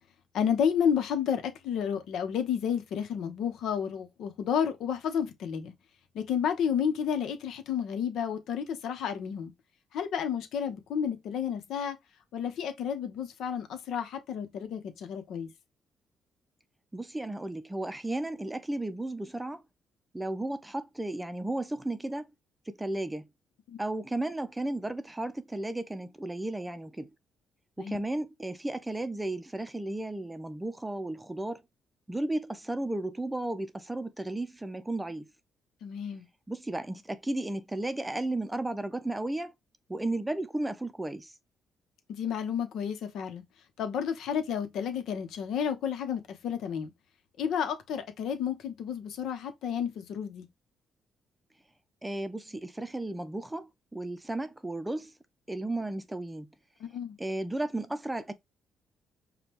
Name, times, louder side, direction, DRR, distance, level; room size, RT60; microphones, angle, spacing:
voice 1, 0.3-5.7 6.1-9.5 9.9-12.0 12.3-15.5 23.7-23.8 27.8-28.0 35.8-36.3 42.1-43.4 43.8-46.9 47.4-50.5 56.8-57.2, left 8 dB, 80° left, 0.9 m, -31 dB
voice 2, 16.9-19.6 20.1-22.3 22.7-23.3 23.8-27.1 27.8-31.6 32.1-35.3 36.5-39.5 39.9-41.3 52.0-55.1 55.5-56.5 57.2-58.3, right 2 dB, 10° right, 0.5 m, -34 dB
5.0 x 2.3 x 2.9 m
cardioid pair, 90°, 0 cm